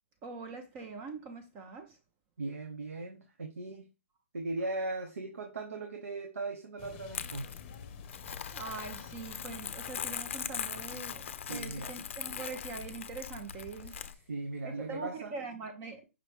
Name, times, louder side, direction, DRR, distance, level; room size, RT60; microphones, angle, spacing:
voice 1, 0.2-2.0 8.5-14.0 14.6-16.0, right 4 dB, 30° right, 0.8 m, -43 dB
voice 2, 2.4-3.9 4.3-7.5 11.5-11.9 13.8-15.4, right 2 dB, 85° right, 0.9 m, -38 dB
sound 1, 6.8-14.7, left 7 dB, 35° left, 0.7 m, -53 dB
Crumpling crinkling, 7.1-14.1, left 8 dB, 60° left, 0.5 m, -41 dB
5.4 x 3.0 x 3.3 m
hypercardioid pair, 135°, 7 cm